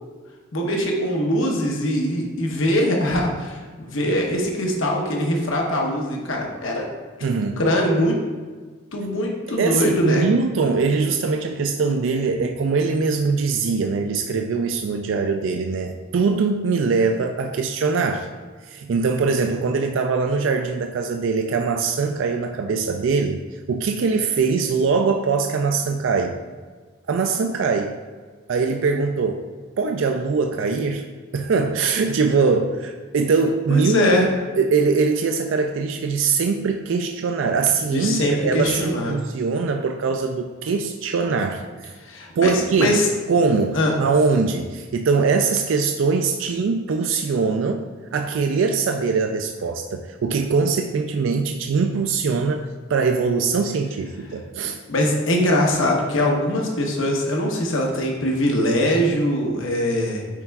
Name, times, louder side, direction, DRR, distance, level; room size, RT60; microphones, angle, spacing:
voice 1, 0.5-6.9 7.6-8.2 8.9-10.2 33.7-34.2 37.9-39.1 42.0-43.1 43.7-43.9 54.9-60.3, left 1 dB, 75° left, 0 dB, 1.0 m, -22 dB
voice 2, 7.2-7.6 9.6-18.3 18.7-26.4 27.1-28.0 28.5-29.4 29.8-31.1 31.3-34.3 34.6-41.9 42.4-43.0 43.3-54.8, right 4 dB, 70° right, 4 dB, 0.4 m, -22 dB
9.6 x 4.3 x 2.3 m, 1.4 s
head